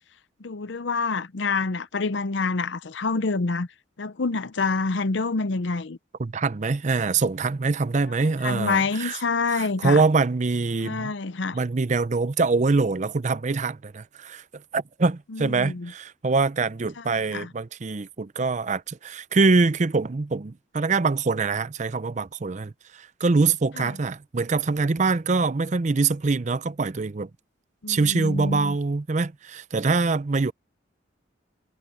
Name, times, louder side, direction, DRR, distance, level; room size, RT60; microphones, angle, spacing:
voice 1, 0.4-3.7 4.0-6.0 8.4-10.0 10.8-11.6 15.3-15.9 17.0-17.5 23.8-23.9 27.8-28.8, left 4 dB, 65° left, 0.7 m, -27 dB
voice 2, 6.2-9.2 9.5-11.1 11.5-14.4 14.7-27.3 27.9-30.5, right 4 dB, 35° right, 0.5 m, -24 dB
head